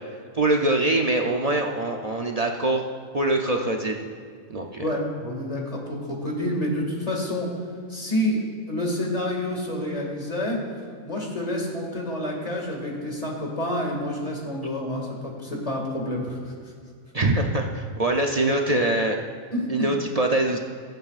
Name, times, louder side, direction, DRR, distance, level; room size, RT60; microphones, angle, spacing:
voice 1, 0.3-2.9 3.1-4.1 4.5-4.9 17.1-19.2 19.7-20.6, right 2 dB, 50° right, 2 dB, 0.4 m, -23 dB
voice 2, 4.8-7.5 7.9-8.4 8.7-10.6 11.0-16.4 19.5-19.9, left 1 dB, 25° left, -1 dB, 2.1 m, -28 dB
21.5 x 7.9 x 2.5 m, 2.1 s
omnidirectional pair, 1.4 m